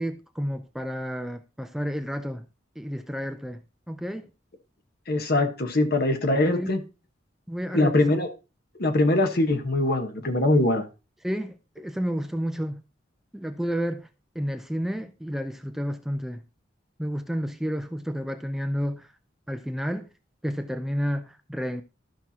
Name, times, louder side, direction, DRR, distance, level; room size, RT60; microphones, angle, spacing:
voice 1, 0.0-2.5 2.8-3.6 3.9-4.3 6.5-6.8 7.5-8.0 11.2-12.8 13.3-14.1 14.4-16.4 17.0-19.1 19.5-20.1 20.4-21.8, equal, ahead, 0.4 m, -31 dB
voice 2, 5.1-6.8 7.7-8.3 8.8-10.9, left 2 dB, 55° left, 1.1 m, -22 dB
13.5 x 5.8 x 2.8 m
head